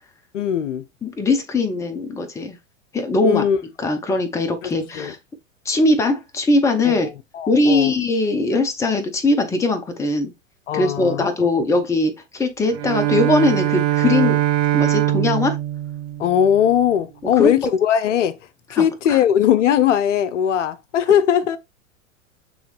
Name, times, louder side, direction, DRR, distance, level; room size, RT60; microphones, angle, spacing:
voice 1, 0.3-0.8 3.2-3.6 4.6-5.1 6.8-7.0 7.3-7.9 10.7-11.5 16.2-18.4 18.7-21.6, left 9 dB, 65° left, 0.6 m, -19 dB
voice 2, 1.0-2.6 2.9-3.4 3.8-5.2 5.7-7.1 7.5-10.3 10.7-14.4 14.7-15.6 17.4-17.5 18.7-19.2, left 2 dB, 10° left, 0.6 m, -20 dB
Bowed string instrument, 12.7-16.8, right 13 dB, 35° right, 0.7 m, -22 dB
7.0 x 3.0 x 2.4 m
figure-of-eight pair, 90°, 40 cm